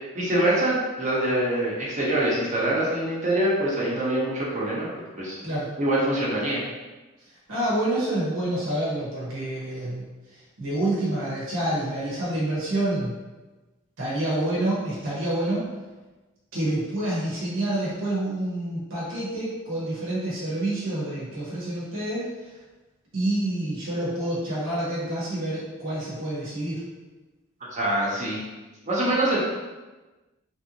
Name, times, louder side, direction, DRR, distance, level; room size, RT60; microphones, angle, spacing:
voice 1, 0.1-4.9 5.2-5.4 5.8-6.6 27.7-28.4 28.9-29.4, right 1 dB, 40° right, -6 dB, 1.0 m, -24 dB
voice 2, 7.5-10.0 10.6-13.2 14.0-15.7 16.5-22.3 23.1-26.8, right 1 dB, 80° right, -7 dB, 1.1 m, -27 dB
3.3 x 2.7 x 2.8 m, 1.2 s
head